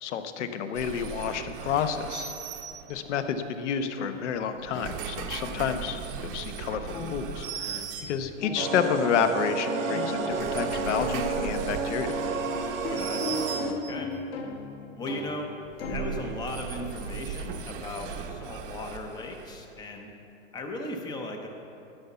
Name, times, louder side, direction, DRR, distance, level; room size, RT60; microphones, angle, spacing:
voice 1, 0.0-2.3 2.9-12.1, left 7 dB, 65° left, 9 dB, 0.9 m, -30 dB
sound 1, 0.7-3.3 4.5-8.6 10.1-14.1 15.6-19.8, right 8 dB, 45° right, 0.8 m, -38 dB
sound 2, 4.0-17.6, left 3 dB, 50° left, 1.6 m, -39 dB
sound 3, 8.6-13.7, right 4 dB, 85° right, 1.3 m, -31 dB
voice 2, 12.9-14.1 15.0-15.5 15.8-20.1 20.5-21.5, left 2 dB, 10° left, 3 dB, 0.6 m, -37 dB
12.5 x 5.6 x 7.0 m, 2.8 s
hypercardioid pair, 145°, 39 cm